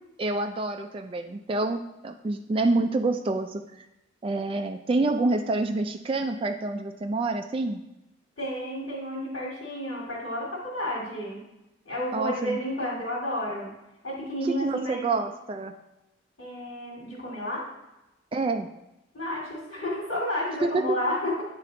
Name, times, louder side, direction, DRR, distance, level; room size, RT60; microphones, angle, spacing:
voice 1, 0.2-3.8 4.2-7.8 12.1-12.6 14.4-15.7 18.3-18.7 20.6-20.8, right 2 dB, 25° right, 5 dB, 0.3 m, -27 dB
voice 2, 8.4-11.4 11.9-13.7 14.0-15.1 16.4-17.7 19.1-21.4, left 1 dB, 90° left, -6 dB, 2.1 m, -31 dB
9.1 x 3.2 x 3.8 m, 0.94 s
head